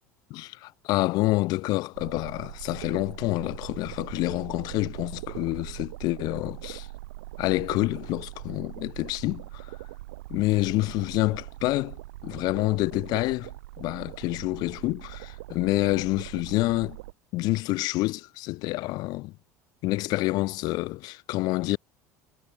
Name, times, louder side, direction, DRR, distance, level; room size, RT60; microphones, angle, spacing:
voice 1, 0.3-6.9 7.4-9.7 10.3-13.5 13.8-17.0 17.3-19.3 19.8-21.8, left 20 dB, 55° left, 0.4 m, -27 dB
sound 1, 1.9-17.1, right 19 dB, 75° right, 0.4 m, -41 dB
hypercardioid pair, 70°, 8 cm